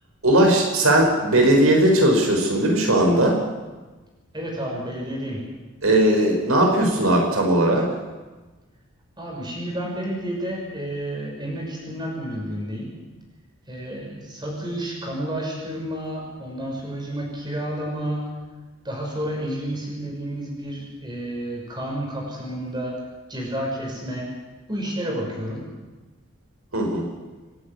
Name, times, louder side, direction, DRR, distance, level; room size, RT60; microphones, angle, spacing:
voice 1, 0.2-3.4 5.8-7.9 26.7-27.0, right 1 dB, 80° right, 1 dB, 4.8 m, -18 dB
voice 2, 4.3-5.5 9.2-12.9 13.7-18.3 18.8-23.0 23.3-24.3 24.7-25.7, right 1 dB, 20° right, -1 dB, 6.3 m, -30 dB
27.5 x 11.0 x 9.7 m, 1.2 s
head